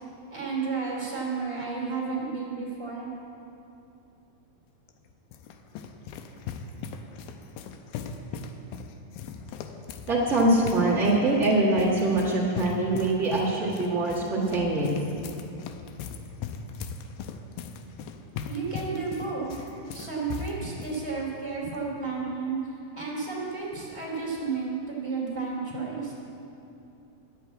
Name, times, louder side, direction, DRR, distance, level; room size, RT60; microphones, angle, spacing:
voice 1, 0.3-3.1 18.5-26.1, right 4 dB, 10° right, -6 dB, 2.8 m, -32 dB
sound 1, 4.9-21.0, left 5 dB, 80° left, 2.3 m, -39 dB
voice 2, 10.1-14.9, right 2 dB, 80° right, -7 dB, 0.6 m, -23 dB
11.0 x 8.4 x 8.4 m, 2.7 s
omnidirectional pair, 4.4 m